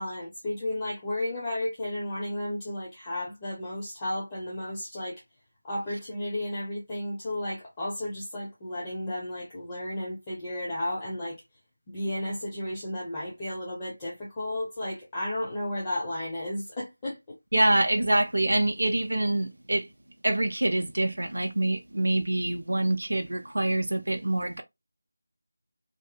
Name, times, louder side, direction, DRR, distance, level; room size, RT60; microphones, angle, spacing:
voice 1, 0.0-5.2 5.6-11.4 11.9-17.2, left 1 dB, 20° left, 0.7 m, -33 dB
voice 2, 17.5-19.9 20.2-24.6, right 1 dB, 60° right, 0.4 m, -25 dB
2.7 x 2.1 x 2.5 m
figure-of-eight pair, 165°, 0 cm